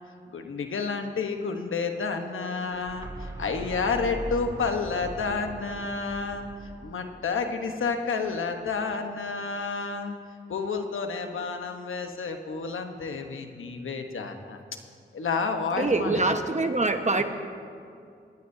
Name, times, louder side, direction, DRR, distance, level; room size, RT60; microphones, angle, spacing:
voice 1, 0.3-6.5 6.8-10.1 10.5-14.6 15.1-16.2, left 4 dB, 85° left, 5 dB, 1.1 m, -30 dB
sound 1, 2.6-8.4, right 1 dB, 20° right, 3.1 m, -41 dB
voice 2, 15.8-17.2, right 2 dB, 35° right, 6 dB, 1.2 m, -24 dB
21.5 x 16.5 x 2.7 m, 2.4 s
cardioid pair, 45°, 20 cm